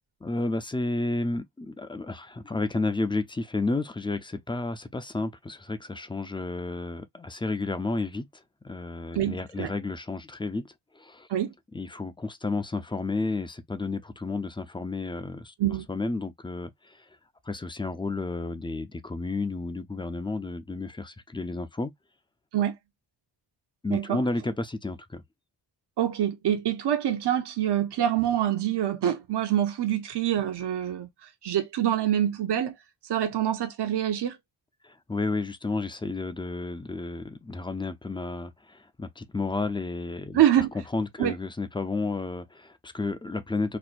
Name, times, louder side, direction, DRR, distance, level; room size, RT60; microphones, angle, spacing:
voice 1, 0.2-11.3 11.7-15.5 15.9-17.1 17.4-21.9 23.8-25.2 34.8-40.7 40.9-43.8, left 3 dB, 10° left, 0.4 m, -32 dB
voice 2, 9.1-9.7 11.3-11.5 15.6-15.9 22.5-22.7 23.9-24.2 26.0-32.8 33.1-34.4 40.3-40.7 41.2-41.3, right 11 dB, 65° right, 0.8 m, -25 dB
4.3 x 2.2 x 2.4 m
wide cardioid pair, 95°, 43 cm